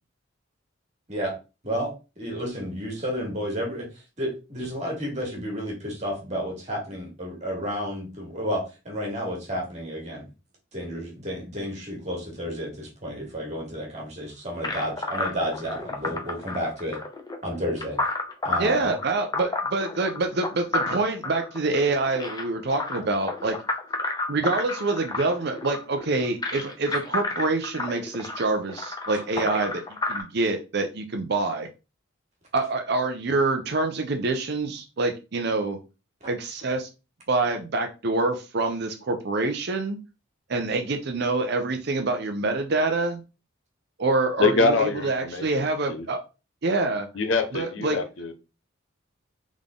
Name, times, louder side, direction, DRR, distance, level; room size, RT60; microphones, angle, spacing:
voice 1, 1.6-3.9 4.2-10.2 10.7-17.0 17.4-18.0 18.4-18.8, equal, 35° right, -1 dB, 1.9 m, -31 dB
sound 1, 14.6-30.2, left 2 dB, 20° left, 0.7 m, -31 dB
voice 2, 18.6-23.6 24.3-29.8 30.1-31.7 32.5-35.8 36.2-36.9 37.3-40.0 40.5-43.2 44.0-46.2 46.6-47.1 47.5-48.0, right 3 dB, 55° right, 5 dB, 0.6 m, -26 dB
voice 3, 44.4-45.5 45.9-46.0 47.2-48.3, left 3 dB, 65° left, 8 dB, 0.7 m, -24 dB
3.8 x 3.6 x 3.6 m, 0.30 s
head